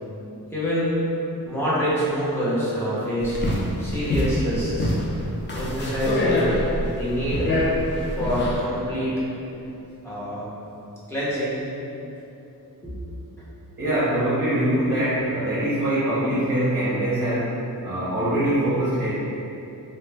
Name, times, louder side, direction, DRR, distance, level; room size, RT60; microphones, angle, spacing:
voice 1, 0.5-1.0 1.4-3.4 3.8-4.9 5.5-6.5 6.9-7.5 8.0-9.2 10.0-10.5 11.1-11.6 12.8-13.1, equal, 5° left, -11 dB, 0.7 m, -26 dB
sound 1, 3.2-8.6, left 1 dB, 30° left, 0.4 m, -25 dB
voice 2, 13.8-17.5 17.8-19.1, right 1 dB, 35° right, -11 dB, 0.7 m, -23 dB
2.9 x 2.1 x 3.3 m, 2.9 s
wide cardioid pair, 175°, 36 cm